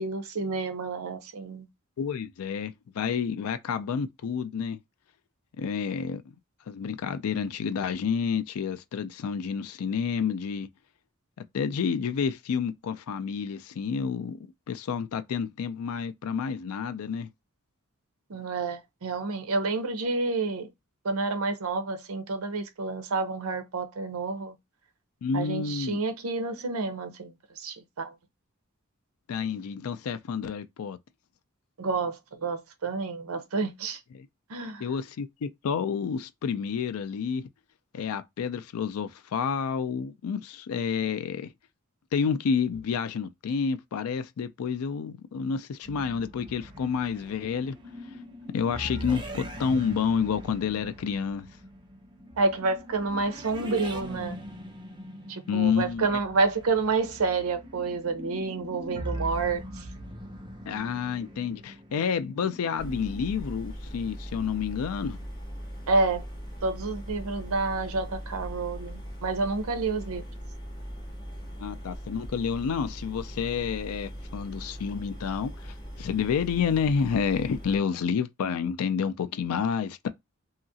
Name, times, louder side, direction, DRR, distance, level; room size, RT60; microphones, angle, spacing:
voice 1, 0.0-1.7 18.3-20.7 21.0-24.6 25.3-28.1 31.8-34.0 34.5-34.8 52.4-54.4 55.3-59.6 65.9-66.2 66.6-70.2, right 3 dB, 75° right, 0.6 m, -29 dB
voice 2, 2.0-4.8 5.6-6.2 6.7-10.7 11.5-17.3 25.2-26.0 29.3-31.0 34.1-34.3 34.8-37.4 37.9-41.5 42.1-47.8 48.5-51.5 55.5-56.2 60.7-65.2 71.6-80.1, left 6 dB, 80° left, 0.4 m, -29 dB
sound 1, 45.8-63.3, right 1 dB, 20° right, 0.5 m, -41 dB
sound 2, 62.8-77.8, equal, 20° left, 0.8 m, -40 dB
2.8 x 2.4 x 2.7 m
head